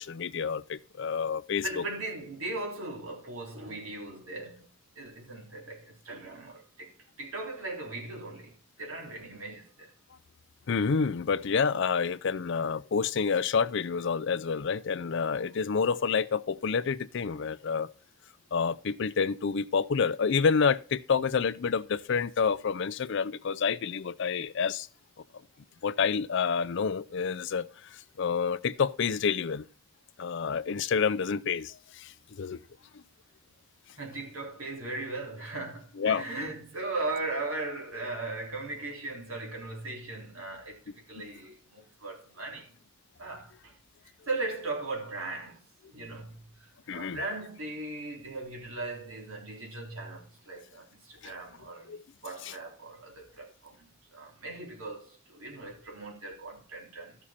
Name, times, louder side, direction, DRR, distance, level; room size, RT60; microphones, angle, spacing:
voice 1, 0.0-1.6 10.7-17.9 18.5-24.9 25.8-29.6 30.2-32.6 36.0-36.2 46.9-47.2 51.2-51.3 51.9-52.0 52.4-52.5, left 5 dB, 60° left, 0.5 m, -28 dB
voice 2, 1.6-4.7 4.9-9.9 33.9-42.7 43.2-43.7 44.3-51.9 52.2-57.2, right 2 dB, 85° right, 3.4 m, -38 dB
14.0 x 6.2 x 4.3 m
head